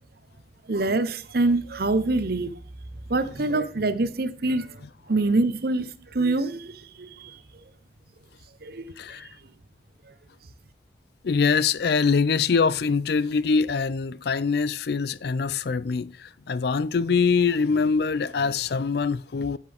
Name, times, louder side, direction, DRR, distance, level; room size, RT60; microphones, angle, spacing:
voice 1, 0.7-2.5 3.1-4.8 5.1-7.4 8.6-8.9, right 2 dB, 55° right, 0.8 m, -25 dB
voice 2, 9.0-9.3 11.2-19.6, left 5 dB, 60° left, 0.4 m, -24 dB
10.5 x 8.3 x 3.5 m
head